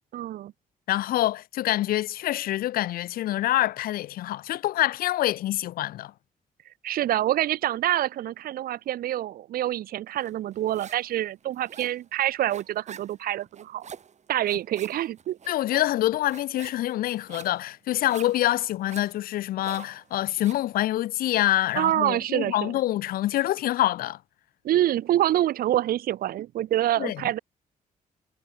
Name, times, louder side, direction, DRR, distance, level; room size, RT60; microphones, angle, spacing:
voice 1, 0.1-0.5 6.8-13.9 14.3-15.4 21.7-22.7 24.6-27.4, right 13 dB, 85° right, 1.6 m, -26 dB
voice 2, 0.9-6.1 15.5-24.2 27.0-27.2, left 14 dB, 85° left, 0.6 m, -26 dB
sound 1, 10.2-11.1 11.4-20.7, right 7 dB, 50° right, 4.7 m, -46 dB
cardioid pair, 100°, 15 cm